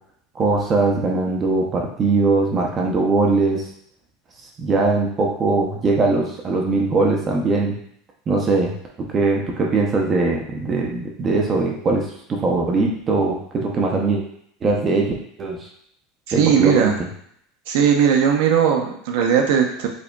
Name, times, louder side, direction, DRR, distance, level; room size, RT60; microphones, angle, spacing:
voice 1, 0.3-3.6 4.6-7.8 8.3-14.2 14.6-15.7 16.3-16.9, right 3 dB, 25° right, -1 dB, 0.6 m, -21 dB
voice 2, 16.4-17.0 17.7-19.9, right 7 dB, 75° right, 3 dB, 0.7 m, -18 dB
4.9 x 2.7 x 2.3 m, 0.67 s
supercardioid pair, 155°, 0 cm